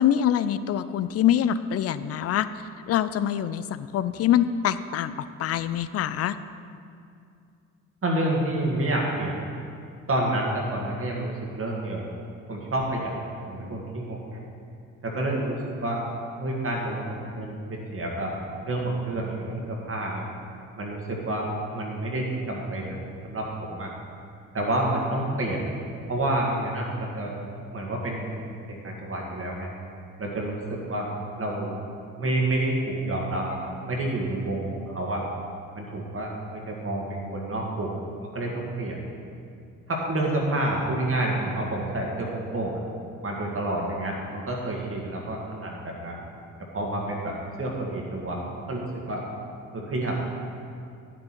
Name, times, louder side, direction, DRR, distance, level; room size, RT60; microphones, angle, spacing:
voice 1, 0.0-2.5 2.9-5.1 5.4-6.4, left 10 dB, 40° left, 14 dB, 0.5 m, -24 dB
voice 2, 8.0-9.3 10.1-12.1 12.5-13.2 13.5-14.4 15.0-16.0 16.4-18.3 18.6-20.3 20.8-23.0 23.2-23.9 24.5-25.7 26.1-27.3 27.7-29.7 30.2-31.1 31.4-31.8 32.2-35.2 35.8-39.0 39.9-42.8 43.2-46.2 46.7-49.2 49.7-50.2, right 1 dB, 35° right, -2 dB, 1.9 m, -29 dB
11.0 x 7.5 x 4.4 m, 2.4 s
figure-of-eight pair, 45°, 40 cm